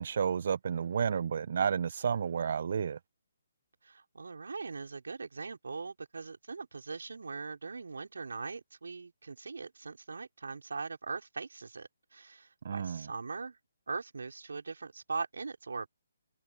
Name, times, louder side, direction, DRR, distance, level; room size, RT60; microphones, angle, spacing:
voice 1, 0.0-3.0 12.6-13.1, right 7 dB, 55° right, 1.1 m, -31 dB
voice 2, 3.8-13.6 13.9-15.9, right 4 dB, 70° right, 4.9 m, -41 dB
figure-of-eight pair, 140°, 0 cm